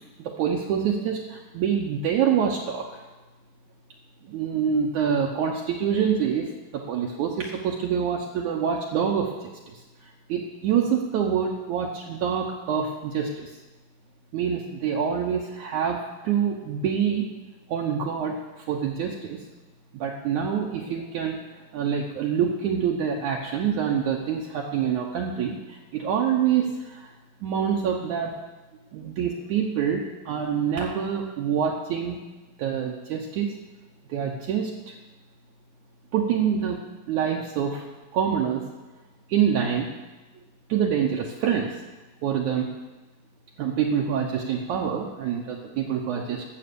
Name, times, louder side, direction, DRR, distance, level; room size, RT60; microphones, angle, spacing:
voice 1, 0.2-3.0 4.3-6.5 6.7-13.5 14.3-17.3 17.7-19.4 19.9-21.4 21.7-27.1 27.4-28.3 28.9-32.2 32.6-33.5 34.1-34.9 36.1-36.8 37.1-37.9 38.1-38.6 39.3-39.9 40.7-41.8 42.2-42.7 43.6-46.4, right 7 dB, 70° right, 0 dB, 2.0 m, -26 dB
13.0 x 8.1 x 6.9 m, 1.2 s
omnidirectional pair, 4.2 m